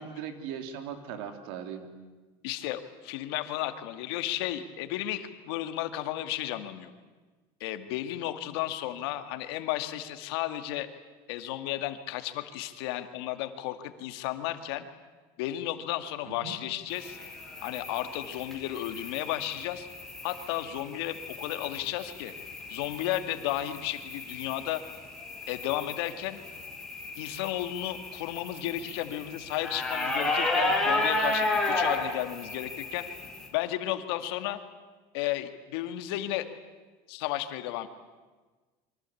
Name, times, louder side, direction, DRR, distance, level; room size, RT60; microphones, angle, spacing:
voice 1, 0.0-1.9 16.3-16.6, right 8 dB, 75° right, 7 dB, 3.4 m, -39 dB
voice 2, 2.4-6.9 7.6-10.9 11.3-14.9 15.4-17.2 17.6-19.9 20.2-22.3 22.7-24.8 25.5-26.4 27.2-33.1 33.5-34.6 35.1-36.5 37.1-37.9, left 14 dB, 90° left, 8 dB, 2.1 m, -33 dB
sound 1, 16.9-33.5, left 2 dB, 5° left, 4.3 m, -33 dB
27.5 x 24.0 x 8.5 m, 1.3 s
cardioid pair, 175°, 13 cm